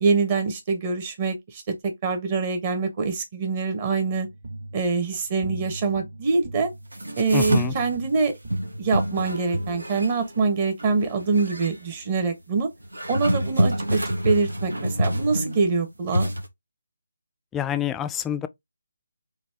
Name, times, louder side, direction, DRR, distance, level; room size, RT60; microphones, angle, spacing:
voice 1, 0.0-4.3 4.7-6.7 7.2-8.3 8.8-12.7 13.1-14.0 14.2-16.3, right 4 dB, 30° right, 1.0 m, -24 dB
sound 1, 4.0-9.3, right 1 dB, 50° right, 1.3 m, -39 dB
sound 2, 6.9-8.1 8.5-10.5 10.8-11.7 12.8-15.8 16.1-16.5, right 1 dB, 90° right, 1.0 m, -27 dB
voice 2, 7.3-7.7 17.5-18.5, left 10 dB, 10° left, 0.3 m, -27 dB
4.0 x 2.8 x 3.3 m
figure-of-eight pair, 155°, 0 cm